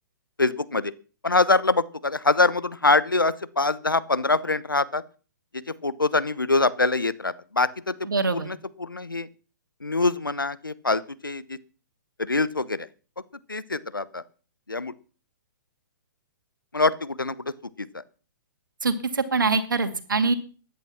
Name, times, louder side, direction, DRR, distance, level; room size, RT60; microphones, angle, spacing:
voice 1, 0.4-0.9 1.2-5.0 5.5-9.3 9.8-11.6 12.2-12.9 13.5-14.2 14.7-14.9 16.7-18.0, left 3 dB, 90° left, 18 dB, 1.0 m, -24 dB
voice 2, 8.1-8.5 18.8-20.3, right 4 dB, 75° right, 10 dB, 2.3 m, -24 dB
14.5 x 10.5 x 5.7 m, 0.38 s
figure-of-eight pair, 120°, 11 cm